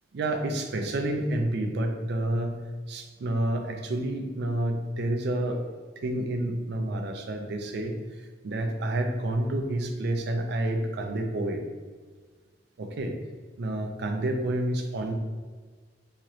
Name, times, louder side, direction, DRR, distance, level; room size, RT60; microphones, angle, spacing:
voice 1, 0.1-2.6 2.9-5.6 6.0-8.0 8.4-11.6 12.8-13.1 13.6-15.1, right 1 dB, 60° right, 5 dB, 0.4 m, -29 dB
2.9 x 2.5 x 3.0 m, 1.5 s
head